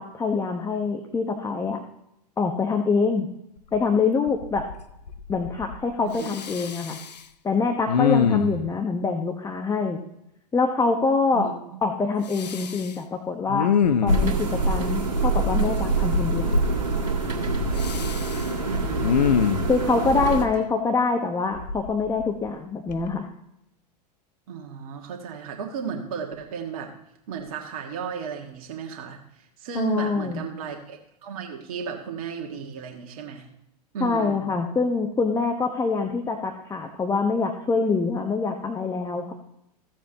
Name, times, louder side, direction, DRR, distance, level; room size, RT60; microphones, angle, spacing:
voice 1, 0.0-1.8 2.4-3.3 3.7-4.7 5.3-7.0 7.4-10.0 10.5-11.5 11.8-13.7 14.0-16.5 19.7-23.3 29.7-30.5 34.0-39.3, left 4 dB, 15° left, 4 dB, 1.0 m, -25 dB
Respiratory sounds, 3.7-3.8 4.3-4.8 5.1-5.8 6.2-7.2 7.9-8.7 12.3-12.9 13.5-14.6 16.1-16.7 17.8-18.5 19.0-19.7 21.6-22.5 22.9-23.1, left 6 dB, 80° left, 0.7 m, -25 dB
sound 1, 14.1-20.5, right 3 dB, 85° right, 1.7 m, -25 dB
voice 2, 18.7-19.2 24.5-26.9 27.3-33.5 33.9-34.4, right 7 dB, 60° right, 2 dB, 1.7 m, -34 dB
15.5 x 7.3 x 2.9 m, 0.79 s
figure-of-eight pair, 90°, 21 cm